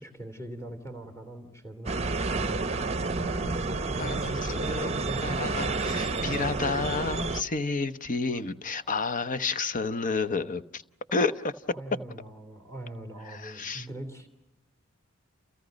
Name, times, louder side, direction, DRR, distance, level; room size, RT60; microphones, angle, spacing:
voice 1, 0.0-2.7 3.2-5.6 11.7-14.3, right 1 dB, 15° left, 3.0 m, -41 dB
sound 1, 1.9-7.4, right 3 dB, 30° right, 0.8 m, -30 dB
voice 2, 4.0-4.9 5.2-10.8 11.1-11.5 13.3-13.9, left 4 dB, 40° left, 0.9 m, -30 dB
29.0 x 29.0 x 5.2 m
head